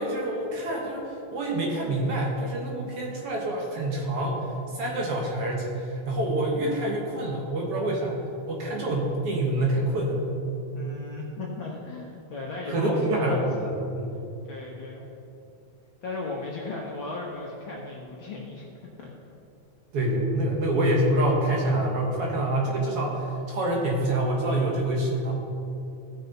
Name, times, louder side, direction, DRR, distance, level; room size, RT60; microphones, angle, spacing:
voice 1, 0.0-8.2 8.5-10.3 12.7-14.2 19.9-25.3, right 1 dB, 55° right, -1 dB, 2.1 m, -26 dB
voice 2, 10.7-13.4 14.4-15.1 16.0-18.6 19.0-19.1, left 3 dB, 55° left, -3 dB, 1.4 m, -36 dB
15.5 x 6.4 x 4.1 m, 2.7 s
omnidirectional pair, 3.3 m